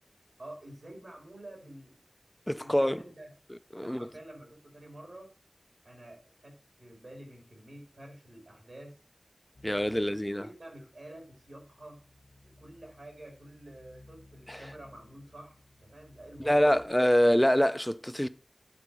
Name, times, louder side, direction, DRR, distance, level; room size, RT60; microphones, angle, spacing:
voice 1, 0.4-2.0 2.5-3.3 3.8-5.3 5.8-9.0 9.9-12.0 12.6-16.9, right 1 dB, 85° right, 2.6 m, -49 dB
voice 2, 2.5-3.0 3.7-4.1 9.6-10.5 14.5-14.6 16.4-18.3, equal, 10° left, 0.4 m, -25 dB
sound 1, 9.6-16.9, left 1 dB, 65° left, 0.9 m, -58 dB
8.5 x 4.0 x 4.7 m
wide cardioid pair, 55°, 0 cm